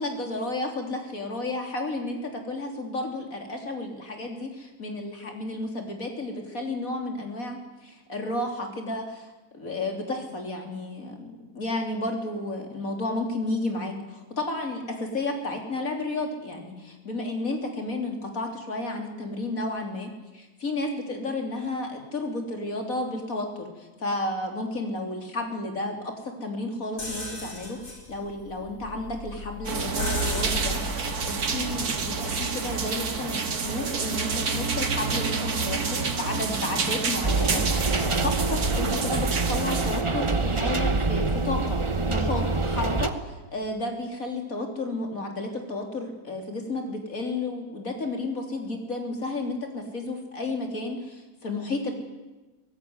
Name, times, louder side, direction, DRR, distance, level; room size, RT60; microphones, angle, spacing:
voice 1, 0.0-41.8 42.1-51.9, left 2 dB, 60° left, 3 dB, 3.8 m, -32 dB
sound 1, 27.0-32.8, equal, 85° left, 5.8 m, -35 dB
sound 2, 29.7-40.0, right 4 dB, 80° right, 2.4 m, -29 dB
sound 3, 37.2-43.1, right 3 dB, 25° right, 0.9 m, -26 dB
23.0 x 18.0 x 9.7 m, 1.1 s
omnidirectional pair, 1.6 m